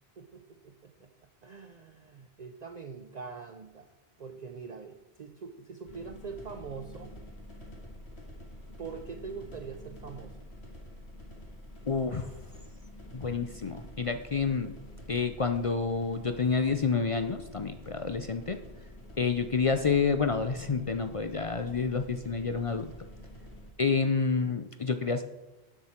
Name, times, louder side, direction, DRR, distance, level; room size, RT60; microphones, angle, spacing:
voice 1, 0.2-1.1 1.4-3.9 4.2-7.1 8.8-10.4, right 5 dB, 50° right, 7 dB, 0.7 m, -43 dB
sound 1, 5.8-23.7, equal, 90° left, 2.3 m, -48 dB
voice 2, 11.9-12.3 13.1-14.7 15.1-18.6 19.2-22.9 23.8-25.2, left 5 dB, 40° left, 8 dB, 0.5 m, -29 dB
12.0 x 7.6 x 4.4 m, 1.0 s
omnidirectional pair, 1.1 m